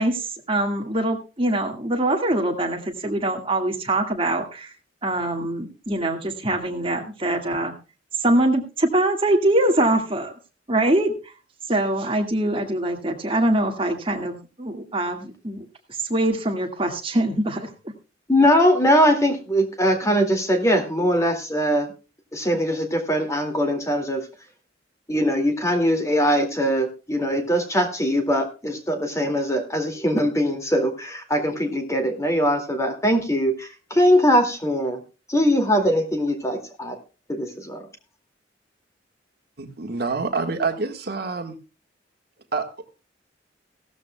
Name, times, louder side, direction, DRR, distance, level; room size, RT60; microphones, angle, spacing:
voice 1, 0.0-4.7 5.0-7.7 8.2-10.3 10.7-11.1 11.7-15.7 16.0-17.7, right 1 dB, 30° right, 4 dB, 1.8 m, -23 dB
voice 2, 18.3-21.9 22.3-24.2 25.1-35.0 35.3-36.9 37.3-37.8, equal, 15° left, 5 dB, 2.2 m, -21 dB
voice 3, 39.6-41.6 42.5-42.9, right 4 dB, 55° right, 5 dB, 1.6 m, -27 dB
17.0 x 13.5 x 2.2 m, 0.32 s
head